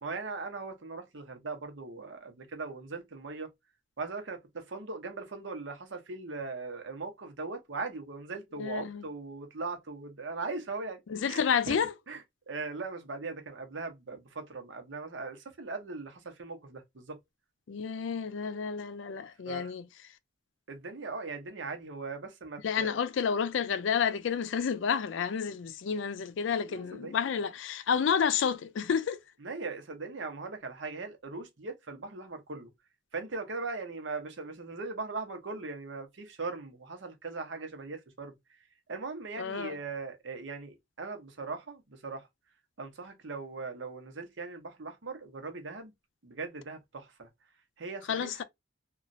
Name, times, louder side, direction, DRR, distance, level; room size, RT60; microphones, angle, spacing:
voice 1, 0.0-3.5 4.0-11.0 11.2-11.8 12.1-17.2 19.5-19.7 20.7-22.9 26.7-27.1 29.4-32.7 33.1-38.3 38.9-42.3 42.8-45.9 46.2-47.3 47.8-48.4, right 3 dB, 85° right, 0.9 m, -39 dB
voice 2, 8.6-9.0 11.1-11.9 17.7-19.8 22.6-29.2 39.4-39.8 48.1-48.4, left 6 dB, 85° left, 0.4 m, -30 dB
3.0 x 2.4 x 2.6 m
head